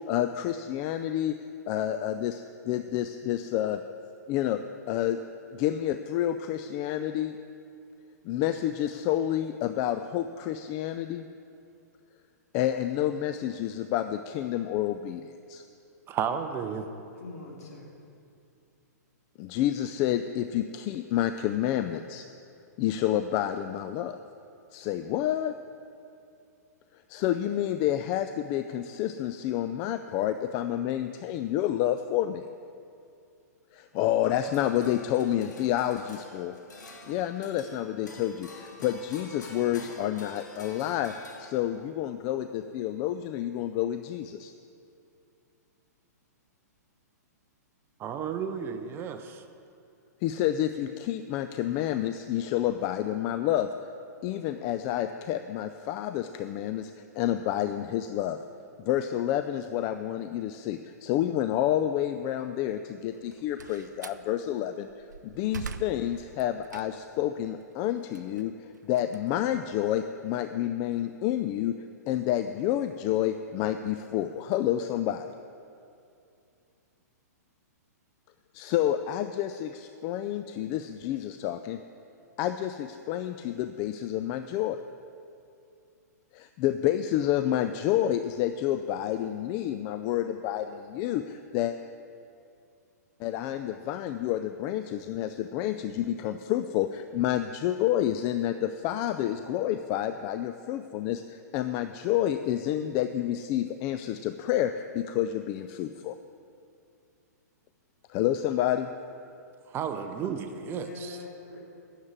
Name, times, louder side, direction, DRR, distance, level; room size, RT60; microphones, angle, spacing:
voice 1, 0.1-1.4 1.7-2.4 2.7-3.8 4.3-4.6 4.9-5.2 5.5-7.4 8.2-11.3 12.5-15.6 19.4-22.3 22.8-24.2 24.7-25.5 27.1-32.4 33.7-36.6 37.1-41.1 41.4-44.5 50.2-53.7 54.2-58.4 58.8-64.9 65.2-71.8 72.1-75.3 78.5-81.8 82.4-84.8 86.3-91.7 93.2-106.2 108.1-108.9, left 12 dB, 35° left, 9 dB, 0.4 m, -29 dB
voice 2, 16.1-16.9 48.0-49.4 109.7-111.2, right 7 dB, 25° right, 8 dB, 0.7 m, -33 dB
voice 3, 17.1-17.9 110.1-111.6, left 3 dB, 65° left, -2 dB, 3.1 m, -43 dB
sound 1, 34.2-41.9, left 3 dB, 90° left, 1.8 m, -48 dB
Slam, 63.1-64.3 64.8-67.2 67.6-70.0, right 6 dB, 85° right, 0.6 m, -43 dB
9.7 x 7.3 x 8.9 m, 2.5 s
hypercardioid pair, 130°, 9 cm